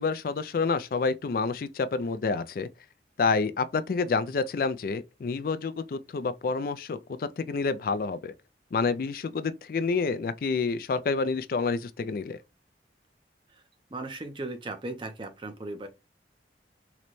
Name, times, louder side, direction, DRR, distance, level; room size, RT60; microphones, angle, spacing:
voice 1, 0.0-2.7 3.2-8.3 8.7-12.4, left 4 dB, 50° left, 0.3 m, -28 dB
voice 2, 13.9-15.9, right 2 dB, 25° right, 0.5 m, -37 dB
3.9 x 2.1 x 3.0 m
head